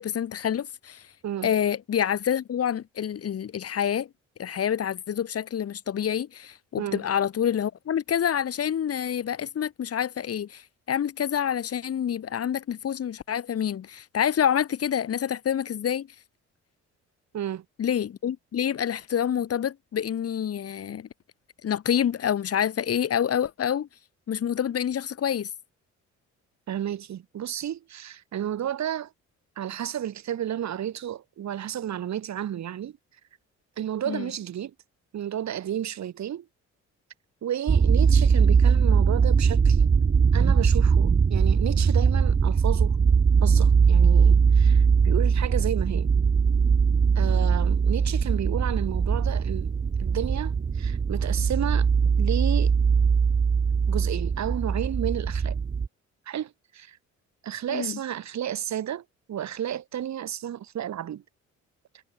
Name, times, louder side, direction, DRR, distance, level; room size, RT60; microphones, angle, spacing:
voice 1, 0.0-1.0 1.4-4.1 4.4-16.1 17.8-21.1 21.6-23.9 24.3-25.5 34.1-34.3 57.7-58.0, left 9 dB, 50° left, 1.5 m, -27 dB
voice 2, 17.3-17.6 26.7-29.1 29.6-33.0 33.8-34.7 35.1-36.5 37.4-39.9 40.3-43.0 43.4-46.1 47.2-49.7 50.0-51.9 52.2-52.7 53.9-55.6 56.3-57.0 57.4-61.2, right 10 dB, 65° right, 4.0 m, -32 dB
sound 1, 37.7-55.9, right 6 dB, 30° right, 0.9 m, -21 dB
cardioid pair, 90°, 30 cm